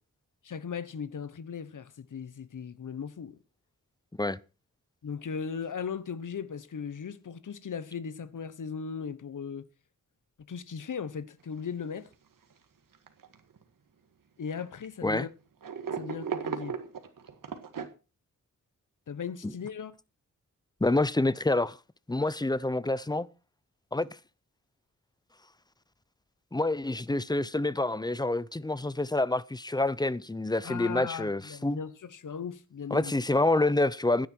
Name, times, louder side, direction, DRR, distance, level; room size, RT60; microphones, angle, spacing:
voice 1, 0.4-3.4 5.0-9.7 10.5-12.1 14.4-15.3 15.9-16.8 19.1-19.9 30.6-33.2, left 6 dB, 65° left, 1.2 m, -38 dB
sound 1, 11.6-11.7 12.0-12.1 12.9-13.6 14.5-14.9 15.6-17.9, right 6 dB, 75° right, 1.9 m, -36 dB
voice 2, 20.8-21.8 22.1-23.3 23.9-24.1 26.5-31.8 32.9-34.3, left 2 dB, 10° left, 0.6 m, -27 dB
16.0 x 10.5 x 4.6 m
wide cardioid pair, 100°, 33 cm